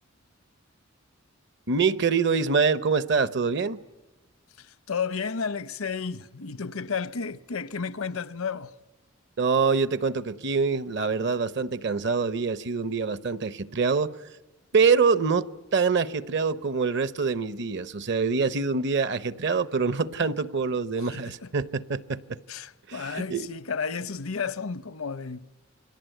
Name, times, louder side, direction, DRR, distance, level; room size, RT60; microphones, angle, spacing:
voice 1, 1.7-3.8 9.4-14.1 14.7-22.4 22.9-23.5, right 5 dB, 55° right, 0.9 m, -25 dB
voice 2, 4.6-8.7 22.5-25.4, left 5 dB, 85° left, 0.9 m, -32 dB
29.0 x 22.0 x 9.2 m
head